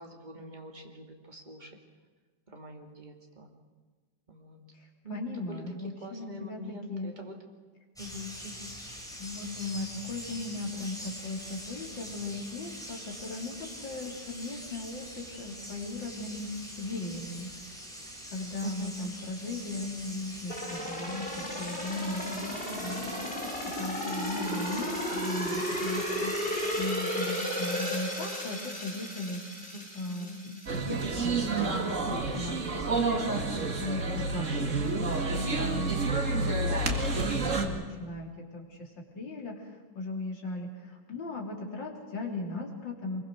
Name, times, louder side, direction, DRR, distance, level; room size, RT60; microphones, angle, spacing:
voice 1, 0.0-1.8 2.5-3.5 4.3-4.6 5.0-5.6 6.0-7.4 8.0-8.7 14.0-14.2 18.6-18.9 22.3-23.0 27.0-27.1 29.7-30.4 34.1-34.4 37.9-38.1, equal, 25° right, 1 dB, 2.9 m, -44 dB
voice 2, 5.1-7.1 9.2-17.5 18.3-22.3 22.8-23.3 23.6-29.4 29.9-37.0 37.3-39.6 39.9-43.2, left 2 dB, 80° left, 0 dB, 4.2 m, -38 dB
sound 1, 8.0-26.9, equal, ahead, 5.6 m, -44 dB
sound 2, 20.5-31.2 31.6-31.7, equal, 30° left, 5.4 m, -34 dB
sound 3, 30.7-37.7, right 3 dB, 45° right, 2.4 m, -29 dB
25.0 x 22.5 x 6.4 m, 1.4 s
omnidirectional pair, 2.0 m